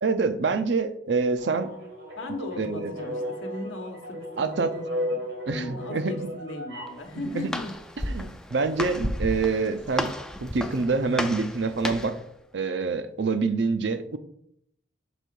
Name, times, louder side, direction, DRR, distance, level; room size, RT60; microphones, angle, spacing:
voice 1, 0.0-1.7 2.6-2.9 4.4-4.7 5.5-6.1 7.3-7.5 8.1-10.1 10.4-12.1 12.5-14.2, right 4 dB, 60° right, 11 dB, 0.5 m, -26 dB
sound 1, 1.4-7.0, equal, 80° right, 1.8 m, -35 dB
voice 2, 2.2-5.2 5.5-7.7 8.1-8.3, left 2 dB, 85° left, 3 dB, 1.0 m, -37 dB
Walk footsteps, 6.9-12.2, left 1 dB, 5° left, 0.3 m, -33 dB
6.0 x 3.6 x 5.3 m, 0.73 s
head